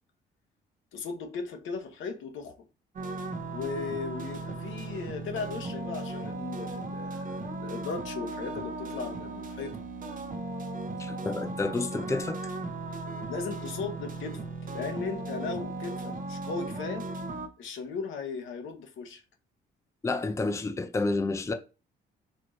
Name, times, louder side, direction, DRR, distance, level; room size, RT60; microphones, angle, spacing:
voice 1, 0.9-2.6 3.5-9.8 13.3-14.4 14.7-17.1 17.6-19.2, left 5 dB, 80° left, 1.0 m, -37 dB
sound 1, 3.0-17.5, right 2 dB, 45° right, 0.8 m, -37 dB
voice 2, 11.0-12.4 20.0-21.5, left 3 dB, 15° left, 0.5 m, -30 dB
4.3 x 3.0 x 2.7 m
cardioid pair, 90°, 20 cm